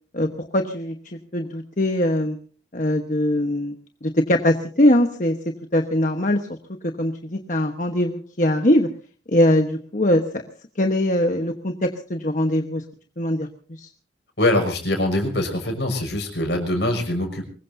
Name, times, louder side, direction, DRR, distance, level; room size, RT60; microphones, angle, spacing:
voice 1, 0.1-1.0 1.3-2.4 2.7-3.7 4.0-5.4 5.7-6.4 6.8-8.9 9.3-10.4 10.8-12.8 13.2-13.5 13.8-13.9, left 1 dB, 45° left, 4 dB, 1.2 m, -21 dB
voice 2, 14.4-17.4, left 1 dB, 70° left, 4 dB, 6.1 m, -23 dB
24.0 x 21.0 x 2.7 m, 0.41 s
head